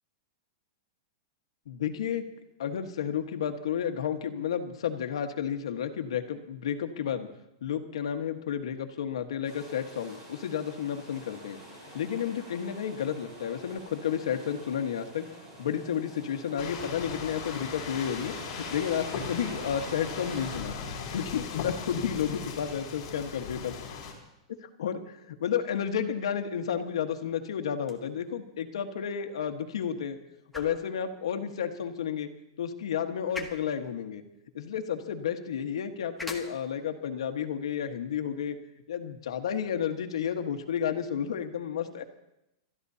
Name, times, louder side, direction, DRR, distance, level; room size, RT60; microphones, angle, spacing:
voice 1, 1.7-2.2 2.6-7.3 7.6-11.6 11.9-15.3 15.6-23.8 24.6-30.2 30.5-32.3 32.6-34.2 34.5-38.6 38.9-42.0, left 8 dB, 80° left, 6 dB, 1.4 m, -32 dB
sound 1, 9.4-20.6, right 1 dB, 25° right, 5.6 m, -46 dB
sound 2, 16.6-24.1, left 6 dB, 35° left, 4.3 m, -38 dB
sound 3, 27.7-39.8, left 3 dB, 5° left, 1.0 m, -49 dB
28.0 x 13.5 x 2.8 m, 0.87 s
supercardioid pair, 175°, 3 cm